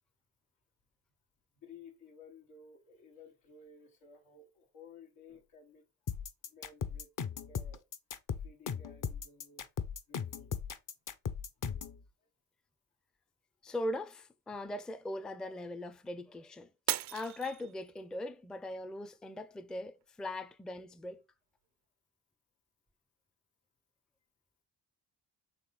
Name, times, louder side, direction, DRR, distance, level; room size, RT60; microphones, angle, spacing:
voice 1, 1.6-5.9 6.4-7.1 7.4-7.8 8.4-9.7 10.1-10.5 11.6-11.7, left 5 dB, 85° left, 1.2 m, -56 dB
sound 1, 6.1-12.0, left 7 dB, 40° left, 0.6 m, -37 dB
voice 2, 13.6-16.7 17.1-21.2, left 1 dB, ahead, 0.4 m, -40 dB
Shatter, 16.9-18.2 18.7-19.1 19.7-19.8, right 14 dB, 60° right, 0.5 m, -37 dB
4.3 x 3.2 x 3.1 m
hypercardioid pair, 40°, 48 cm